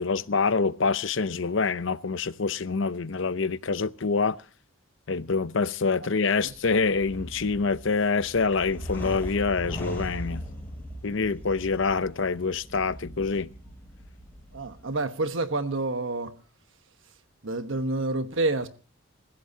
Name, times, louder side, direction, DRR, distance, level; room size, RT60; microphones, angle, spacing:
voice 1, 0.0-4.4 5.1-10.4 11.0-13.5, left 4 dB, 65° left, 0.7 m, -26 dB
sound 1, 6.4-14.9, equal, 10° left, 7.6 m, -39 dB
voice 2, 14.5-16.3 17.4-18.7, right 2 dB, 65° right, 1.2 m, -28 dB
27.0 x 15.5 x 2.8 m
head